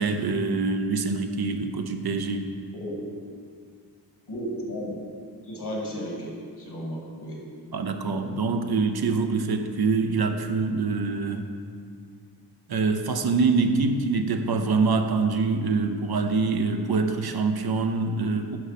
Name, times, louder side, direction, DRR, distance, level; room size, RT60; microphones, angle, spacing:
voice 1, 0.0-2.5 7.7-11.5 12.7-18.6, right 4 dB, 65° right, 6 dB, 0.8 m, -25 dB
voice 2, 4.3-4.9 5.5-7.4, equal, 70° left, -2 dB, 2.4 m, -34 dB
8.7 x 5.7 x 5.9 m, 2.2 s
wide cardioid pair, 90°, 41 cm